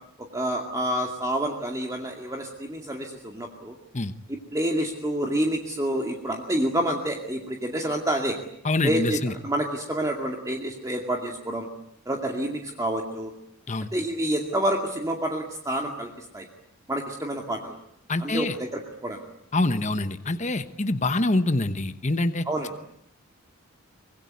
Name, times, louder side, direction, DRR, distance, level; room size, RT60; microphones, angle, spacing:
voice 1, 0.3-3.7 4.3-8.4 8.8-11.7 12.1-13.3 13.9-16.5 16.9-17.8 18.2-19.2 22.5-22.7, right 1 dB, 15° right, 1 dB, 2.3 m, -28 dB
voice 2, 8.6-9.3 13.7-13.9 18.1-18.6 19.5-22.5, left 2 dB, 30° left, 10 dB, 1.1 m, -25 dB
25.0 x 21.5 x 9.4 m, 0.75 s
head